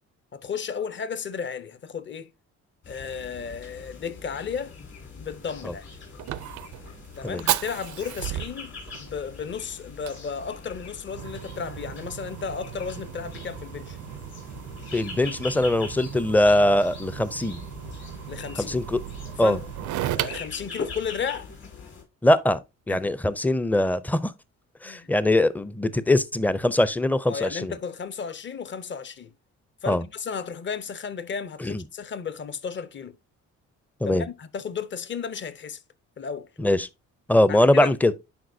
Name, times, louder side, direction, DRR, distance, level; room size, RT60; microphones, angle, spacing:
voice 1, 0.3-2.3 2.9-4.7 5.2-5.9 7.2-14.0 18.3-18.7 19.4-19.6 20.0-21.5 22.9-23.1 24.8-25.1 27.3-29.3 29.8-33.2 34.0-35.8 36.2-36.5 37.5-37.9, left 6 dB, 40° left, 0.8 m, -34 dB
sound 1, 2.8-22.0, left 4 dB, 55° left, 4.0 m, -43 dB
Fire, 5.4-21.6, right 13 dB, 75° right, 0.5 m, -36 dB
voice 2, 14.9-17.6 18.6-19.0 19.4-19.6 22.2-22.6 22.9-24.3 24.8-27.7 29.9-30.0 31.6-31.8 34.0-34.2 36.6-36.9 37.3-38.1, left 1 dB, 5° left, 0.5 m, -22 dB
10.5 x 4.6 x 2.7 m
cardioid pair, 90°, 30 cm